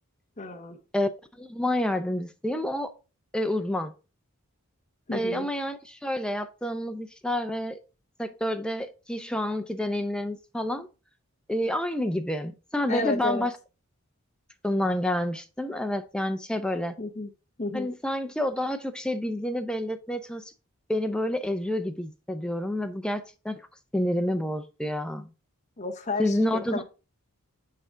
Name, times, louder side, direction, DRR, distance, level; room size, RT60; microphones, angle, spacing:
voice 1, 0.4-0.8 5.1-5.5 12.9-13.5 17.0-17.3 17.6-17.9 25.8-26.8, left 3 dB, 30° left, 0.8 m, -32 dB
voice 2, 1.4-2.9 3.3-3.9 5.1-7.8 8.2-10.9 11.5-13.5 14.6-17.0 17.7-20.5 20.9-23.6 23.9-25.3 26.2-26.8, left 1 dB, 5° left, 0.5 m, -29 dB
6.7 x 4.7 x 3.7 m
head